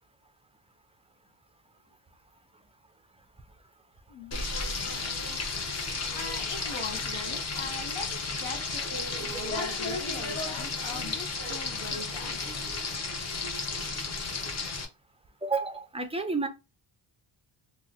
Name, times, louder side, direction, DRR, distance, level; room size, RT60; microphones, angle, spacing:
Frying (food), 4.3-14.8, left 3 dB, 30° left, 0.7 m, -33 dB
voice 1, 6.1-12.4, left 4 dB, 65° left, 0.8 m, -41 dB
voice 2, 15.4-16.5, right 4 dB, 15° right, 0.4 m, -30 dB
2.9 x 2.0 x 3.8 m
wide cardioid pair, 140°, 50 cm